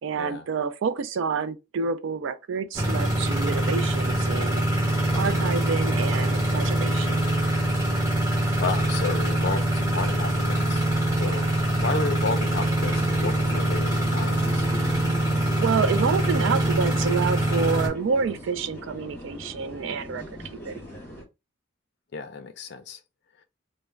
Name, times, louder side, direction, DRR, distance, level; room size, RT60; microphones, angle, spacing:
voice 1, 0.0-4.6 5.1-7.2 15.4-20.2 20.6-20.8, right 5 dB, 65° right, 0.3 m, -28 dB
sound 1, 2.7-17.9, right 1 dB, 15° right, 1.0 m, -24 dB
voice 2, 8.6-10.8 11.1-14.7 22.1-23.0, left 4 dB, 50° left, 0.4 m, -32 dB
sound 2, 12.8-21.2, left 1 dB, 10° left, 0.8 m, -40 dB
2.3 x 2.0 x 3.2 m
head